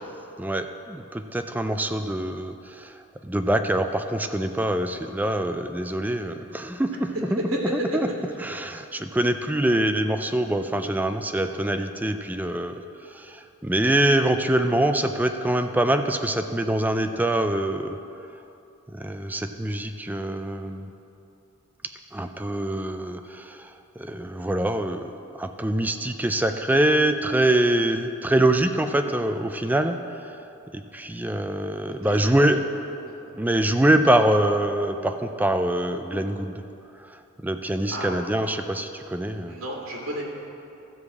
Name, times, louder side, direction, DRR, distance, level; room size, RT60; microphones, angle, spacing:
voice 1, 0.4-7.4 7.7-8.1 8.4-12.7 13.1-18.0 18.9-20.9 22.1-25.1 25.4-30.4 30.7-32.6 33.4-36.6 37.0-39.6, right 1 dB, 10° right, 7 dB, 0.4 m, -24 dB
voice 2, 7.4-8.0 31.9-32.5 32.9-33.7 37.9-38.1 39.5-40.2, equal, 85° right, -3 dB, 2.0 m, -32 dB
13.0 x 4.9 x 7.1 m, 2.8 s
head